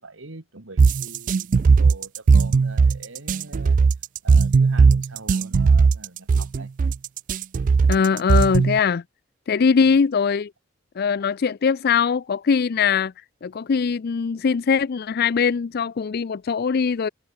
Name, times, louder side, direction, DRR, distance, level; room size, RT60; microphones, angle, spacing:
voice 1, 0.0-3.8 4.2-6.7 9.8-9.9, right 2 dB, 85° right, 2.1 m, -43 dB
sound 1, 0.8-8.8, right 4 dB, 45° right, 0.3 m, -17 dB
voice 2, 7.9-9.0 9.5-10.5 11.0-13.1 13.4-17.1, left 6 dB, 55° left, 0.4 m, -21 dB
head